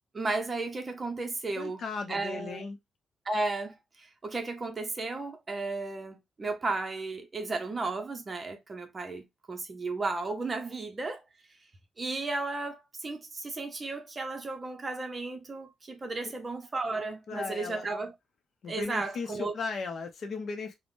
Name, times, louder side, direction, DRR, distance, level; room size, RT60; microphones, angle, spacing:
voice 1, 0.1-1.8 2.1-2.7 3.3-11.2 12.0-18.1 18.7-19.5, right 3 dB, 30° right, 0.6 m, -34 dB
voice 2, 1.6-2.8 16.2-16.3 17.3-17.9 18.6-20.7, left 4 dB, 55° left, 0.6 m, -36 dB
3.4 x 2.1 x 2.5 m
cardioid pair, 110°, 0 cm